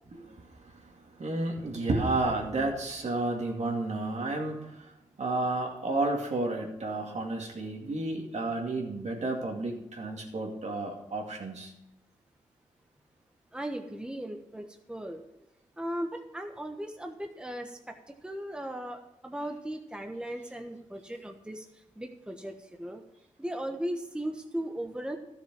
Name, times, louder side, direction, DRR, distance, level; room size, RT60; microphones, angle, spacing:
voice 1, 1.2-4.9 5.2-11.7, right 2 dB, 65° right, 1 dB, 2.4 m, -31 dB
voice 2, 13.5-15.2 15.8-17.9 18.2-21.6 22.0-23.0 23.4-25.2, right 1 dB, 5° right, 4 dB, 1.2 m, -37 dB
12.5 x 6.7 x 6.1 m, 0.88 s
cardioid pair, 55°, 13 cm